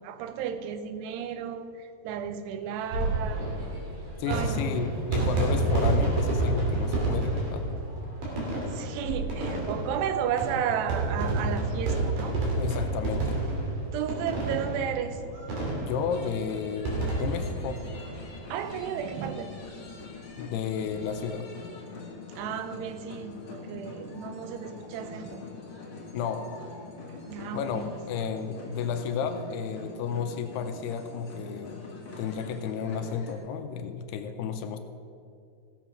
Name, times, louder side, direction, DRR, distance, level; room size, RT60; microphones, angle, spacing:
voice 1, 0.0-3.5 4.3-4.7 8.7-12.4 13.9-15.3 18.5-19.5 22.3-25.5 27.1-28.0, right 8 dB, 85° right, 10 dB, 2.7 m, -33 dB
sound 1, 2.8-18.8 19.1-19.2 19.4-19.5 20.8-21.1, right 2 dB, 55° right, 3.8 m, -29 dB
voice 2, 4.2-7.7 12.6-13.4 15.8-17.8 20.4-21.5 26.1-26.5 27.5-31.8 32.2-34.8, left 6 dB, 85° left, 7 dB, 2.6 m, -32 dB
sound 2, 16.1-33.4, left 3 dB, 45° left, 1.5 m, -44 dB
16.0 x 7.2 x 6.1 m, 2.4 s
omnidirectional pair, 4.9 m